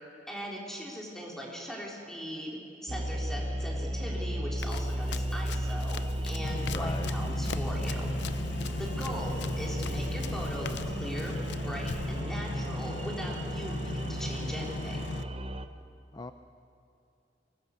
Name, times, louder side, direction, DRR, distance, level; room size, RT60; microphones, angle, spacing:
voice 1, 0.3-8.1 8.8-11.3 11.6-15.1, equal, 5° left, -3 dB, 4.0 m, -40 dB
sound 1, 2.9-15.7, right 1 dB, 30° right, 0.8 m, -34 dB
Run, 4.6-12.2, left 5 dB, 70° left, 0.6 m, -43 dB
sound 2, 6.4-15.2, left 2 dB, 90° left, 0.9 m, -38 dB
voice 2, 6.7-7.1 16.1-16.3, left 2 dB, 25° left, 8 dB, 0.6 m, -38 dB
23.5 x 20.0 x 6.7 m, 2.5 s
head